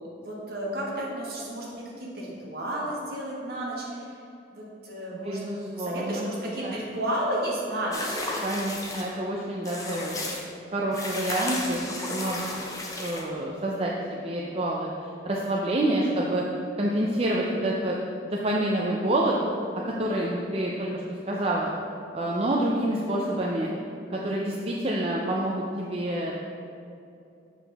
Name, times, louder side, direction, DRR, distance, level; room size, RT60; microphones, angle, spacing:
voice 1, 0.2-4.1 4.5-5.4 5.8-8.2 23.2-23.6, right 1 dB, 60° right, -5 dB, 1.6 m, -32 dB
voice 2, 5.2-6.3 6.6-6.8 8.4-10.3 10.7-12.6 13.0-16.5 16.8-18.0 18.2-19.4 19.8-21.7 22.1-23.7 24.1-26.3, right 1 dB, 35° right, -3 dB, 0.5 m, -28 dB
sound 1, 7.9-9.1 9.7-10.4 10.9-13.3, left 2 dB, 20° left, 0.7 m, -33 dB
7.2 x 5.8 x 3.5 m, 2.6 s
head